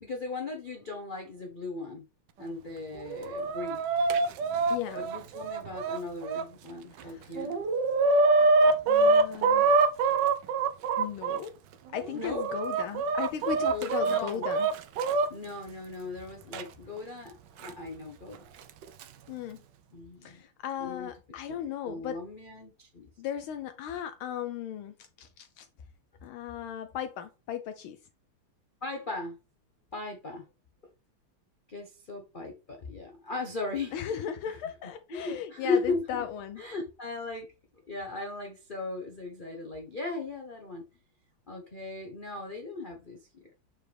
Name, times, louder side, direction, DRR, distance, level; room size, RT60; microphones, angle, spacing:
voice 1, 0.0-2.1 2.4-3.8 4.9-7.6 12.1-12.6 13.6-14.4 15.3-18.4 19.9-20.4 20.8-21.1 21.5-21.6 21.8-23.1 28.8-29.4 29.9-30.5 31.7-34.6 35.1-36.2 36.6-37.5 37.9-40.8 41.5-43.5, left 3 dB, 45° left, 0.6 m, -37 dB
Chicken rooster, 3.0-6.4 7.0-7.1 7.4-11.4 12.0-15.3 16.5-16.6 17.6-17.7 18.7-19.0, right 3 dB, 70° right, 1.2 m, -25 dB
voice 2, 4.7-5.0 7.0-7.3 8.9-9.7 11.0-11.5 11.9-14.7 19.3-19.6 20.2-22.2 23.2-25.7 26.2-28.0 33.9-36.6, left 9 dB, 80° left, 1.4 m, -36 dB
6.9 x 4.5 x 3.4 m
omnidirectional pair, 2.4 m